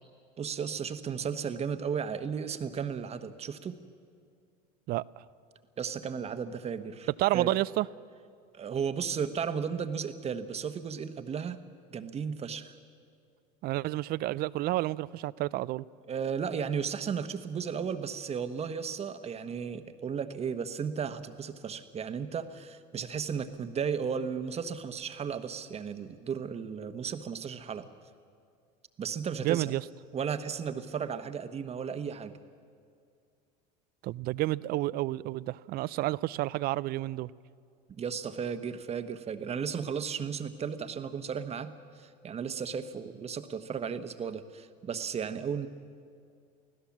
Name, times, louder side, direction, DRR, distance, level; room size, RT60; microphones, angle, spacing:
voice 1, 0.4-3.8 5.8-7.1 7.3-7.5 8.5-11.6 11.9-12.8 16.1-27.9 29.0-29.7 30.1-32.3 37.9-41.7 42.0-45.7, right 6 dB, 30° right, 1.3 m, -34 dB
voice 2, 7.2-7.9 13.6-15.8 29.4-29.8 34.0-37.3, right 17 dB, 50° right, 0.5 m, -30 dB
24.5 x 16.0 x 7.3 m
supercardioid pair, 100°, 20 cm